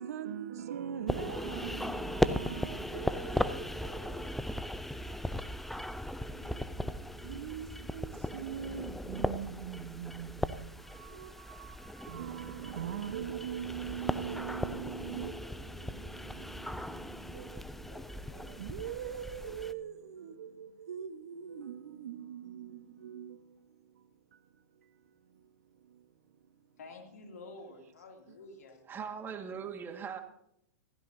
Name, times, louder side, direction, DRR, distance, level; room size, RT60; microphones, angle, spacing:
voice 1, 0.0-6.0 6.3-26.8 28.3-28.4, right 8 dB, 75° right, 1.2 m, -43 dB
sound 1, 1.1-19.7, left 1 dB, 5° left, 0.5 m, -37 dB
voice 2, 26.8-28.9, left 2 dB, 80° left, 2.7 m, -49 dB
voice 3, 28.9-30.2, right 7 dB, 25° right, 1.7 m, -40 dB
16.0 x 15.5 x 2.7 m
hypercardioid pair, 110°, 8 cm